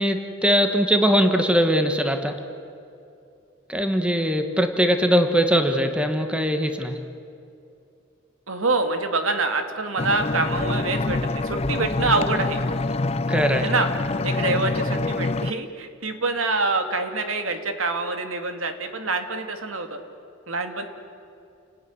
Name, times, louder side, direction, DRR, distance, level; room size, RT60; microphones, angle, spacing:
voice 1, 0.0-2.4 3.7-7.0 13.3-13.7, equal, 5° right, 6 dB, 1.5 m, -21 dB
voice 2, 8.5-12.6 13.6-13.9 14.2-20.0 20.5-20.8, right 3 dB, 90° right, 6 dB, 2.5 m, -26 dB
sound 1, 10.0-15.5, left 2 dB, 30° left, 0.5 m, -26 dB
29.0 x 19.0 x 9.8 m, 2.6 s
head